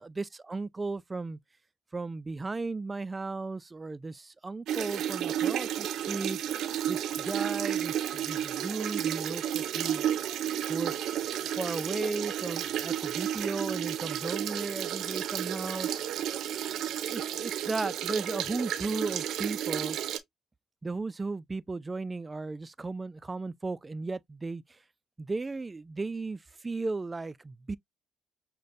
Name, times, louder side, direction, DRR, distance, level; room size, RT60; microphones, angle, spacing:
voice 1, 0.0-1.4 1.9-6.4 6.9-10.0 10.7-15.9 17.0-20.0 20.8-24.6 25.2-27.8, right 3 dB, 20° right, 0.3 m, -35 dB
sound 1, 4.7-20.2, right 10 dB, 70° right, 0.6 m, -32 dB
6.3 x 2.2 x 2.5 m
supercardioid pair, 80°, 0 cm